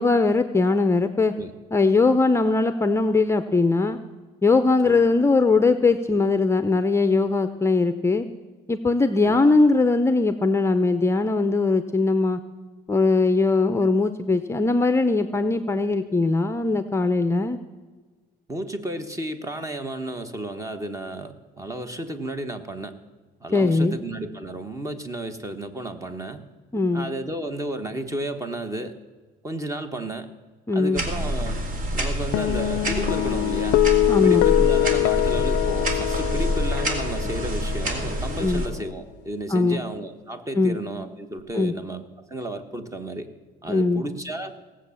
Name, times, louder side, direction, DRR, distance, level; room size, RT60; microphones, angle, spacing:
voice 1, 0.0-1.3 1.7-4.0 4.4-8.3 8.7-12.4 12.9-17.6 23.5-24.0 26.7-27.1 30.7-31.0 34.1-34.5 38.4-38.6 39.5-39.8 40.6-40.8 41.5-41.7 43.7-44.0, left 3 dB, 15° left, 10 dB, 0.6 m, -20 dB
voice 2, 18.5-22.9 23.4-26.4 26.9-28.9 29.4-30.3 30.7-31.6 31.9-33.9 34.2-43.3 43.6-44.6, right 1 dB, 20° right, 9 dB, 1.2 m, -32 dB
sound 1, 30.9-38.7, right 1 dB, 50° right, 2.4 m, -27 dB
sound 2, 32.3-38.9, left 20 dB, 85° left, 0.4 m, -24 dB
18.0 x 7.5 x 7.1 m, 1.4 s
cardioid pair, 110°, 17 cm